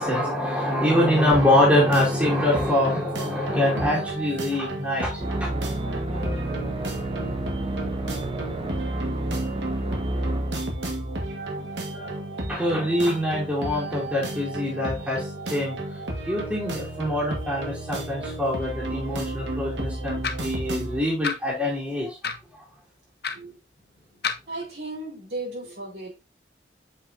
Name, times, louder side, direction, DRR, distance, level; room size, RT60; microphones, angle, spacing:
voice 1, 0.0-5.5 5.8-6.4 11.9-12.2 12.5-15.8 16.3-22.3, left 1 dB, 10° right, 2.9 m, -24 dB
sound 1, 1.3-21.0, right 1 dB, 85° right, 1.8 m, -33 dB
sound 2, 5.2-10.6, right 1 dB, 30° right, 1.0 m, -30 dB
sound 3, 20.2-20.5 21.2-21.4 22.2-22.5 23.2-23.4 24.2-24.4, left 5 dB, 60° left, 0.8 m, -29 dB
voice 2, 24.5-26.2, right 2 dB, 70° right, 4.5 m, -35 dB
7.5 x 5.5 x 2.7 m
head